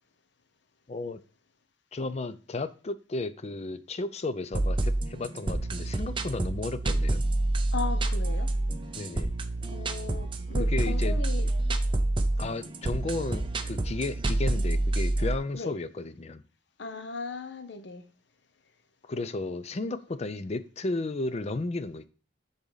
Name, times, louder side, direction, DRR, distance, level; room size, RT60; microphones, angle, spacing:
voice 1, 0.9-1.2 1.9-7.2 9.0-9.4 10.5-11.2 12.4-16.4 19.1-22.1, left 2 dB, 35° left, 0.5 m, -33 dB
sound 1, 4.5-15.4, right 2 dB, 25° right, 0.6 m, -28 dB
voice 2, 7.7-8.5 9.7-11.5 15.5-15.7 16.8-18.0, left 4 dB, 65° left, 0.9 m, -37 dB
10.0 x 4.1 x 4.0 m
head